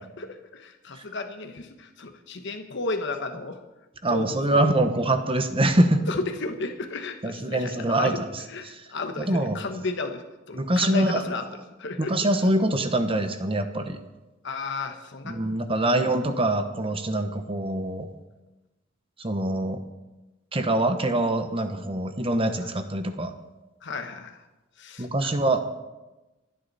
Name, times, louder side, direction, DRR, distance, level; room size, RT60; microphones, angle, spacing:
voice 1, 0.2-3.6 4.1-4.7 6.1-8.2 8.5-11.5 11.8-12.2 14.4-15.4 22.6-22.7 23.8-24.4 24.8-25.3, left 3 dB, 65° left, 6 dB, 1.2 m, -33 dB
voice 2, 4.0-6.0 7.2-8.8 9.2-9.6 10.5-11.2 12.0-14.0 15.2-18.1 19.2-19.8 20.5-23.3 25.0-25.6, right 1 dB, 30° right, 8 dB, 1.1 m, -24 dB
27.0 x 10.0 x 4.2 m, 1.1 s
head